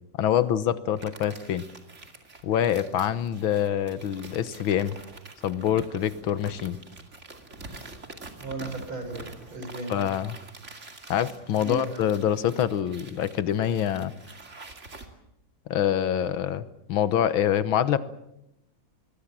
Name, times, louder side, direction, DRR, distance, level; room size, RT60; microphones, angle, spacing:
voice 1, 0.2-1.6 2.4-5.0 5.4-6.8 9.9-10.4 11.1-14.1 15.7-18.1, left 10 dB, 80° left, 14 dB, 1.8 m, -25 dB
sound 1, 1.0-15.1, right 3 dB, 35° right, 2.7 m, -46 dB
voice 2, 8.4-10.0 11.6-12.0, right 2 dB, 85° right, 5 dB, 6.6 m, -35 dB
25.5 x 21.0 x 7.4 m, 0.86 s
omnidirectional pair, 2.2 m